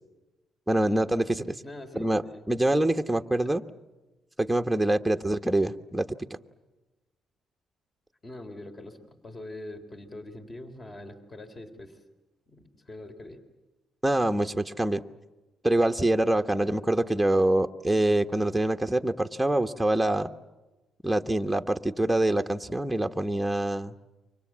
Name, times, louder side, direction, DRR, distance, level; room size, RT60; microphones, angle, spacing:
voice 1, 0.7-1.6 1.9-2.2 2.5-3.6 4.4-6.4 14.0-15.0 15.6-20.3 21.0-23.9, right 1 dB, 5° right, 5 dB, 1.3 m, -25 dB
voice 2, 1.6-2.4 3.4-3.5 8.2-12.0 12.5-13.4, left 1 dB, 30° left, 7 dB, 3.7 m, -43 dB
29.0 x 25.0 x 7.5 m, 1.1 s
cardioid pair, 90°, 0 cm